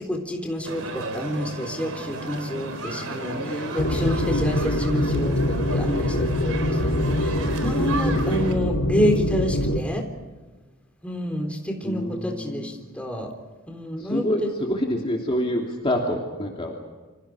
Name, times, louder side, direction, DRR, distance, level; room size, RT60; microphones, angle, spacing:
voice 1, 0.0-10.1 11.0-13.3 13.7-14.3, left 1 dB, 5° left, 2 dB, 3.9 m, -28 dB
sound 1, 0.6-8.5, right 3 dB, 80° right, 3.9 m, -34 dB
voice 2, 3.4-3.8 11.8-12.7 14.0-16.8, equal, 25° left, -1 dB, 3.0 m, -27 dB
sound 2, 3.8-9.8, left 1 dB, 90° left, 3.3 m, -24 dB
29.0 x 26.5 x 5.0 m, 1.3 s
head